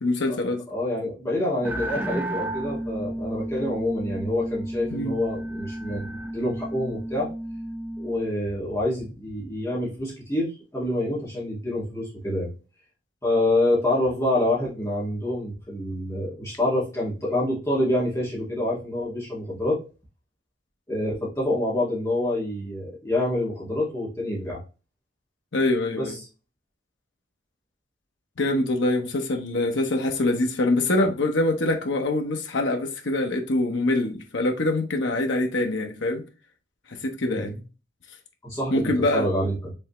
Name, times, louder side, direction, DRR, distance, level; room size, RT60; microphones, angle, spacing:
voice 1, 0.0-0.6 4.9-5.1 25.5-26.2 28.4-36.2 36.9-37.6 38.7-39.3, left 2 dB, 70° left, 0.8 m, -24 dB
voice 2, 0.7-6.1 6.3-7.3 8.0-12.5 13.2-19.8 20.9-24.6 26.0-26.2 31.0-31.1 37.2-37.6 38.4-39.7, left 1 dB, 15° left, 1.6 m, -27 dB
sound 1, 1.6-8.3, right 1 dB, 10° right, 0.3 m, -32 dB
5.3 x 3.2 x 3.0 m
head